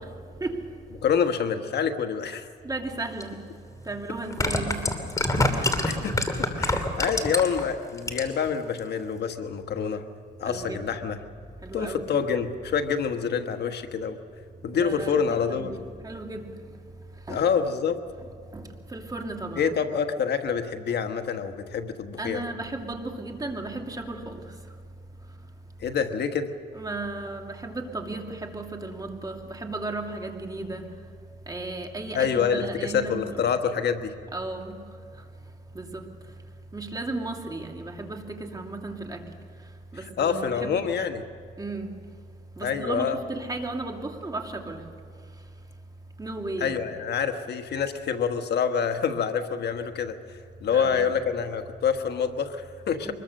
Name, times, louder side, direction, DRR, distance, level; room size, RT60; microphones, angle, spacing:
voice 1, 1.0-2.5 5.9-6.2 6.6-10.0 10.4-11.2 11.7-14.2 14.6-15.7 17.3-18.0 19.6-22.4 25.8-26.5 32.1-34.1 39.9-41.2 42.6-43.2 46.6-53.1, left 7 dB, 70° left, 7 dB, 1.4 m, -27 dB
voice 2, 2.6-3.4 3.8-4.8 5.5-5.7 10.4-11.0 11.6-12.0 14.8-16.5 17.3-17.4 18.5-19.7 22.2-24.4 26.7-30.8 31.5-33.4 34.3-34.8 35.7-36.0 36.7-39.3 39.9-40.9 41.6-41.9 42.6-44.8 46.2-46.8 50.7-51.1 53.1-53.2, right 2 dB, 20° right, 2 dB, 2.6 m, -35 dB
sound 1, 3.2-3.3 4.2-7.6 8.0-8.5 8.8-8.9, left 2 dB, 20° left, 2.7 m, -25 dB
24.5 x 21.5 x 6.6 m, 2.3 s
cardioid pair, 105°, 18 cm